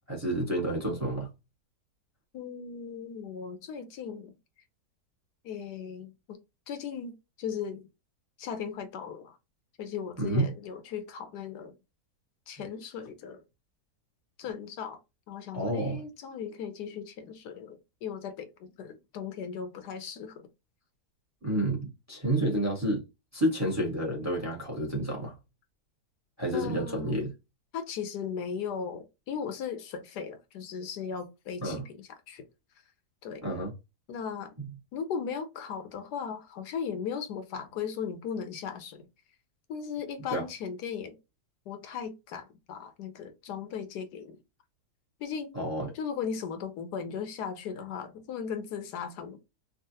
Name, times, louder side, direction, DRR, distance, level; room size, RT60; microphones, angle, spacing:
voice 1, 0.1-1.3 10.2-10.5 15.5-16.0 21.4-23.0 23.3-25.3 26.4-27.3 31.6-31.8 33.4-33.7 34.6-34.7 40.3-40.4 45.5-45.9, right 1 dB, 10° right, 0.9 m, -29 dB
voice 2, 2.3-4.3 5.4-6.4 6.7-7.8 8.4-9.4 9.8-11.8 12.5-13.4 14.4-15.0 15.3-20.5 26.5-27.2 27.7-32.5 33.2-33.5 34.1-34.5 34.9-39.1 39.7-41.1 41.7-44.4 45.2-45.6 45.9-49.4, left 7 dB, 80° left, 1.2 m, -37 dB
3.7 x 2.4 x 2.7 m
omnidirectional pair, 1.8 m